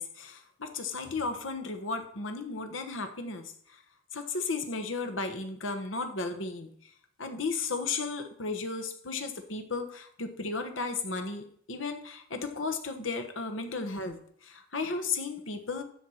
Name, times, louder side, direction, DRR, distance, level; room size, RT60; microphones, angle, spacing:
voice 1, 0.0-3.8 4.1-6.9 7.2-15.8, left 4 dB, 75° left, 7 dB, 1.3 m, -34 dB
12.5 x 4.6 x 6.4 m, 0.62 s
head